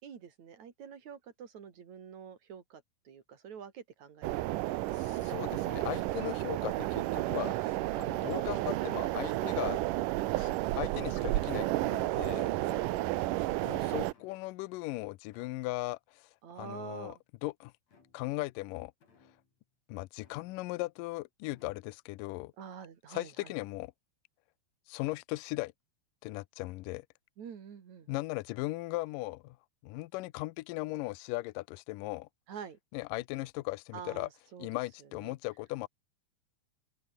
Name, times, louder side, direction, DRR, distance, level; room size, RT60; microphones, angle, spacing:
voice 1, 0.0-4.3 4.7-5.3 12.6-12.9 16.4-17.2 22.6-23.5 27.4-28.1 32.5-32.8 33.9-34.7 35.2-35.3, right 7 dB, 50° right, 3.7 m, -47 dB
sound 1, 4.2-14.1, right 17 dB, 80° right, 1.9 m, -32 dB
voice 2, 4.9-9.8 10.4-10.5 10.8-12.5 13.6-16.3 16.6-17.2 17.4-17.7 18.1-18.9 19.9-22.5 23.1-23.9 24.9-25.7 26.2-27.1 28.1-29.6 29.8-32.3 32.9-34.3 34.6-35.9, left 20 dB, 85° left, 1.9 m, -38 dB
sound 2, 6.7-7.4 7.9-8.5 9.1-10.0 10.3-11.0 11.6-12.5 12.8-13.6 14.1-14.7 15.3-15.8 16.5-17.2 17.9-18.4 19.0-19.7 20.2-20.9 21.4-21.9, left 5 dB, 40° left, 5.4 m, -65 dB
open air
omnidirectional pair, 4.7 m